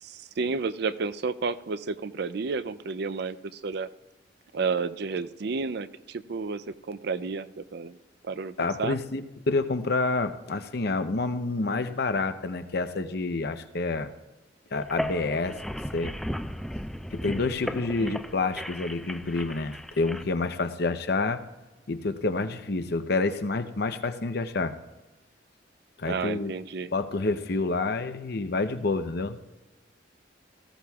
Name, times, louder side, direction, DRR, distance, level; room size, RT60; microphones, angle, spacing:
voice 1, 0.0-3.9 4.5-8.0 8.2-9.0 18.0-18.2 26.0-26.9, right 4 dB, 60° right, 13 dB, 0.5 m, -31 dB
voice 2, 8.6-14.1 14.7-15.6 15.9-16.1 17.1-21.4 21.9-24.7 26.0-26.5 26.9-29.4, left 3 dB, 60° left, 9 dB, 0.7 m, -28 dB
sound 1, 14.8-20.2, equal, ahead, 0.5 m, -36 dB
18.5 x 16.0 x 2.4 m, 1.1 s
head